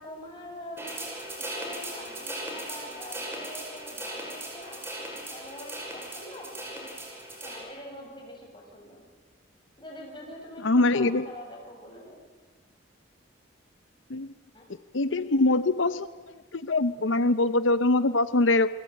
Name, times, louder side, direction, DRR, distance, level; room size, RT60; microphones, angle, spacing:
voice 1, 0.0-9.1 9.8-12.2 14.5-14.7, left 1 dB, 25° left, 0 dB, 7.5 m, -45 dB
sound 1, 0.8-7.6, right 1 dB, 15° right, 5.9 m, -38 dB
voice 2, 10.6-11.2 14.1-14.3 14.9-16.1 16.5-18.7, left 2 dB, 90° left, 13 dB, 0.8 m, -23 dB
28.5 x 23.0 x 9.2 m, 1.3 s
head